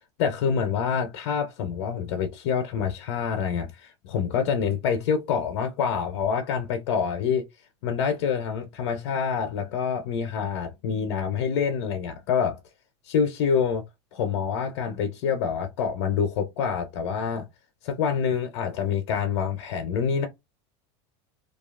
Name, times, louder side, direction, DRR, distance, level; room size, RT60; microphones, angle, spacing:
voice 1, 0.2-7.4 7.8-12.6 13.1-13.8 14.1-17.5 17.8-20.3, left 7 dB, 75° left, 0.7 m, -26 dB
2.7 x 2.3 x 2.4 m
supercardioid pair, 120°, 15 cm